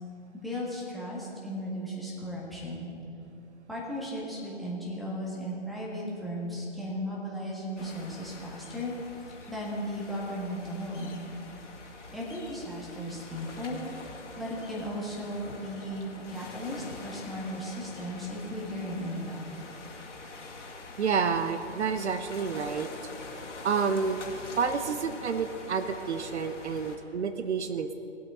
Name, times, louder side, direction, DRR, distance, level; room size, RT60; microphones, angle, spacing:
voice 1, 0.4-2.9 3.7-8.9 9.5-11.2 12.1-13.8 14.4-19.4, equal, ahead, -6 dB, 1.5 m, -36 dB
sound 1, 7.8-27.0, left 3 dB, 80° left, 2.3 m, -45 dB
voice 2, 21.0-22.9 23.6-24.2 24.6-27.9, right 6 dB, 65° right, 10 dB, 0.8 m, -29 dB
19.5 x 8.0 x 3.8 m, 2.9 s
hypercardioid pair, 140°, 36 cm